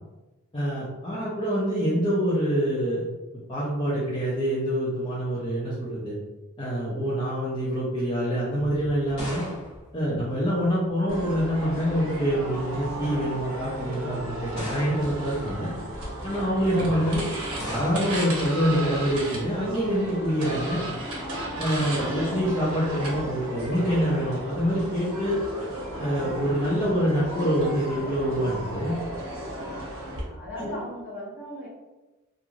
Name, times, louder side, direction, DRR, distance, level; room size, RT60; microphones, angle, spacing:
voice 1, 0.5-3.0 3.5-6.2 6.6-9.4 9.9-15.7 16.2-17.2 17.7-20.8 21.6-25.4 26.0-29.0 30.6-30.7, equal, 20° left, -8 dB, 0.5 m, -26 dB
sound 1, 8.6-10.9 11.9-12.4 13.2-13.3 14.5-15.4 17.6-18.3, equal, 65° left, 1.4 m, -38 dB
sound 2, 11.1-30.2, right 1 dB, 80° right, 0.9 m, -34 dB
voice 2, 30.2-31.7, equal, 5° right, -9 dB, 1.0 m, -39 dB
3.0 x 2.5 x 2.4 m, 1.1 s
head